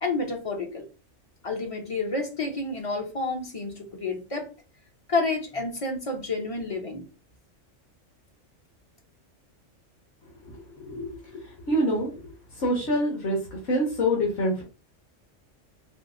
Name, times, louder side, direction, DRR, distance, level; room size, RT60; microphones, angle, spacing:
voice 1, 0.0-0.9 1.4-4.5 5.1-7.0, left 3 dB, 35° left, 3 dB, 0.6 m, -29 dB
voice 2, 11.7-12.1 12.6-13.4 13.7-14.6, equal, 60° left, -2 dB, 1.4 m, -25 dB
5.1 x 2.0 x 2.5 m, 0.31 s
omnidirectional pair, 1.3 m